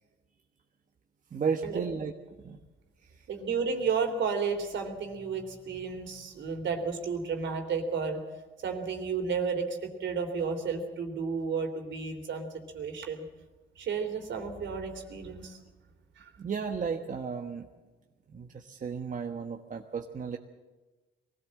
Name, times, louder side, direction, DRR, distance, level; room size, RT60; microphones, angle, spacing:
voice 1, 1.3-2.1 2.4-2.6 16.4-17.7 18.3-20.4, right 6 dB, 40° right, 3 dB, 1.3 m, -34 dB
voice 2, 3.3-8.2 8.6-12.5 12.7-13.2 13.8-15.6 16.2-16.3, right 5 dB, 70° right, 5 dB, 3.4 m, -32 dB
22.0 x 16.5 x 7.6 m, 1.2 s
cardioid pair, 90°, 20 cm